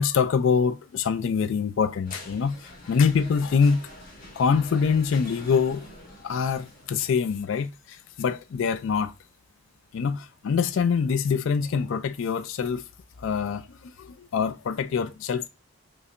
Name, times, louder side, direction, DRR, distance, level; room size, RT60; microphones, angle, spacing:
voice 1, 0.0-3.8 4.4-5.9 6.2-9.1 9.9-12.8 13.2-15.5, left 6 dB, 60° left, 0.3 m, -25 dB
sound 1, 2.0-7.0, left 1 dB, 40° left, 1.4 m, -45 dB
5.4 x 2.1 x 2.5 m
head